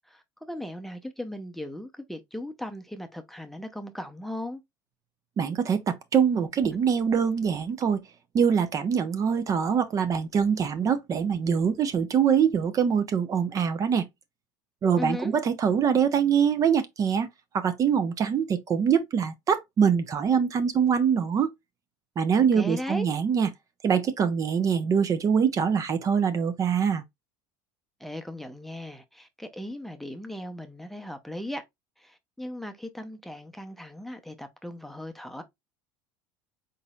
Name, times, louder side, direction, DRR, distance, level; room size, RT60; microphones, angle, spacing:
voice 1, 0.1-4.6 15.0-15.3 22.4-23.1 28.0-31.6 32.0-35.4, left 1 dB, ahead, 0.7 m, -37 dB
voice 2, 5.4-8.0 8.3-14.1 14.8-17.3 17.5-21.5 22.2-23.5 23.8-27.0, right 7 dB, 35° right, 0.6 m, -24 dB
4.0 x 3.9 x 2.3 m
supercardioid pair, 100°, 10 cm